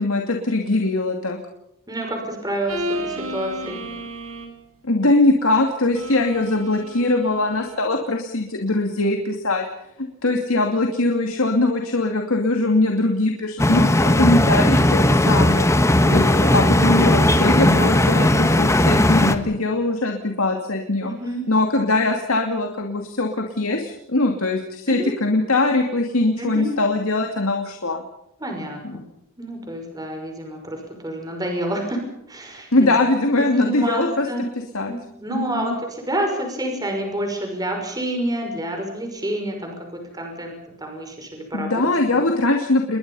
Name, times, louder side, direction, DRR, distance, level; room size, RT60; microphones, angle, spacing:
voice 1, 0.0-1.4 4.8-9.6 10.0-15.7 16.1-21.1 21.5-28.0 28.8-29.0 32.7-34.3 34.7-34.9 35.3-35.8 41.5-43.0, left 2 dB, 75° left, 3 dB, 2.5 m, -21 dB
voice 2, 1.9-3.8 16.0-16.5 21.0-21.4 24.9-25.1 26.4-26.7 28.4-29.0 29.4-32.9 33.3-34.5 34.9-41.8, right 1 dB, 20° right, 3 dB, 5.8 m, -28 dB
sound 1, 2.7-4.6 5.9-7.8, equal, 85° right, 4.9 m, -32 dB
sound 2, 13.6-19.4, left 1 dB, 15° left, 1.4 m, -17 dB
29.0 x 22.0 x 5.6 m, 0.81 s
head